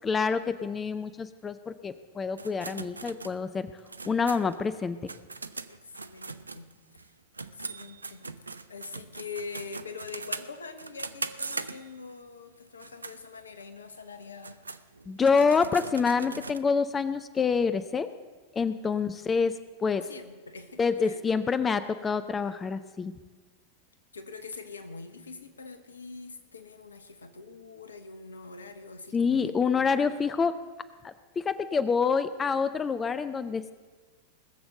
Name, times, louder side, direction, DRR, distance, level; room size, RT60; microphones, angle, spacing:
voice 1, 0.0-3.7 4.1-5.0 15.1-18.1 18.5-19.5 19.8-20.1 20.8-23.1 29.1-30.5 31.0-33.7, left 5 dB, 20° left, 12 dB, 0.5 m, -27 dB
sound 1, 2.4-7.1 7.3-12.1 12.7-13.2 13.6-13.7 14.2-16.6, right 3 dB, 80° right, 0.5 m, -40 dB
voice 2, 5.7-6.7 7.0-7.1 7.5-8.3 8.7-14.6 20.1-21.2 24.1-30.1, left 4 dB, 75° left, 9 dB, 1.1 m, -44 dB
19.5 x 7.0 x 7.6 m, 1.3 s
figure-of-eight pair, 90°, 0 cm